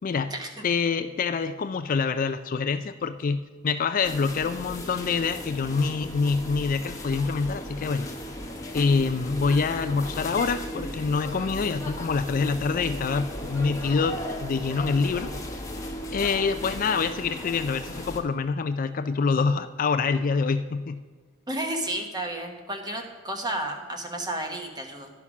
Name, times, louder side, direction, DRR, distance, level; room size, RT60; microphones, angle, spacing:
voice 1, 0.0-0.3 0.6-8.1 8.7-15.3 16.1-21.0, left 5 dB, 40° left, 10 dB, 0.3 m, -26 dB
sound 1, 4.0-18.2, left 1 dB, 15° left, 1.0 m, -36 dB
voice 2, 21.5-25.1, right 1 dB, 20° right, 3 dB, 1.1 m, -32 dB
11.0 x 5.8 x 6.0 m, 1.4 s
head